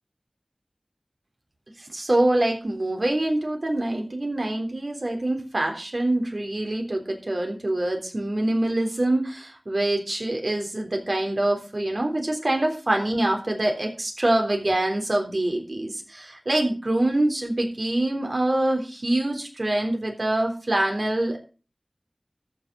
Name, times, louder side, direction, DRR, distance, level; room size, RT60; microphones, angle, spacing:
voice 1, 1.8-21.4, right 1 dB, 70° right, 3 dB, 3.5 m, -25 dB
13.5 x 6.7 x 6.0 m, 0.34 s
wide cardioid pair, 45°, 0 cm